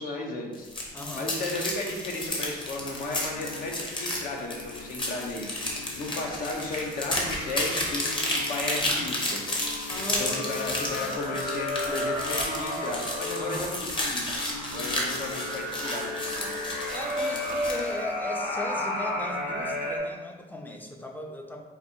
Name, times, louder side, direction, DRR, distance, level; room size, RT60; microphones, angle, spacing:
voice 1, 0.0-5.5 6.0-9.4 10.2-14.4 14.7-16.5, left 2 dB, 55° left, 1 dB, 1.0 m, -34 dB
sound 1, 0.5-17.9, left 1 dB, 30° left, 1.1 m, -32 dB
voice 2, 0.9-1.3 9.9-11.1 13.4-13.8 16.9-21.6, left 1 dB, 10° left, 2 dB, 0.6 m, -37 dB
sound 2, 2.8-20.0, left 2 dB, 90° left, 1.2 m, -35 dB
sound 3, 12.4-17.8, right 7 dB, 70° right, 0.5 m, -44 dB
4.3 x 2.6 x 4.4 m, 1.2 s
cardioid pair, 110°, 17 cm